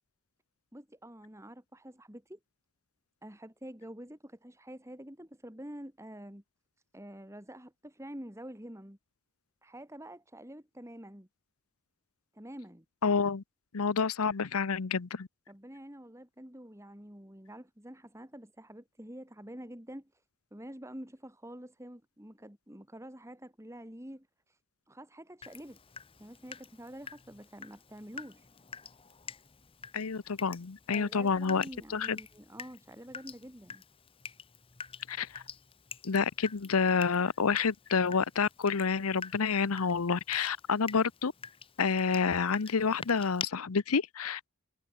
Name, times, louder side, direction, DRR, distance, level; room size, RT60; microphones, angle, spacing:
voice 1, 0.7-2.4 3.2-6.4 6.9-9.0 9.6-11.3 12.3-12.8 15.5-20.2 20.5-24.6 24.9-25.8 26.2-28.5 30.9-33.8, right 1 dB, 15° right, 2.7 m, -47 dB
voice 2, 13.0-13.4 13.7-15.3 29.9-31.6 31.9-32.2 35.1-35.4 36.0-41.3 41.8-44.5, left 5 dB, 90° left, 0.8 m, -29 dB
Water tap faucet / Drip, 25.4-43.4, left 6 dB, 25° left, 1.0 m, -47 dB
head